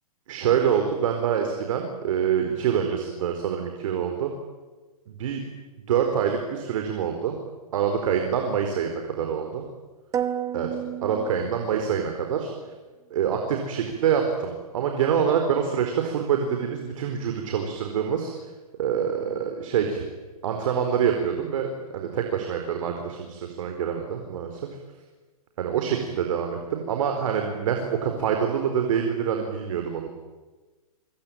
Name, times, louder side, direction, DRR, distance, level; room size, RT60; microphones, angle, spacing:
voice 1, 0.3-4.3 5.1-5.4 5.9-7.4 7.7-9.6 10.5-10.7 11.0-12.5 13.1-18.3 18.8-20.1 20.4-24.6 25.6-30.1, right 8 dB, 60° right, 4 dB, 4.5 m, -26 dB
sound 1, 10.1-12.1, right 9 dB, 15° right, 1.8 m, -31 dB
25.0 x 24.5 x 9.1 m, 1.3 s
hypercardioid pair, 140°, 19 cm